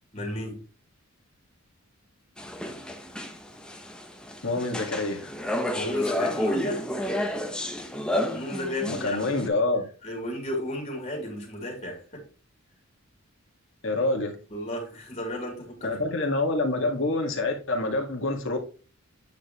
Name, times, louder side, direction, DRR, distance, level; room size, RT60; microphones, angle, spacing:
voice 1, 0.1-0.6 5.7-6.9 8.3-9.3 10.0-12.2 14.5-16.0, left 1 dB, 30° left, 3.3 m, -33 dB
sound 1, 2.4-9.5, left 1 dB, 5° left, 0.9 m, -31 dB
voice 2, 4.4-5.3 8.9-9.9 13.8-14.4 15.8-18.6, left 2 dB, 60° left, 2.0 m, -26 dB
9.1 x 5.2 x 3.1 m
head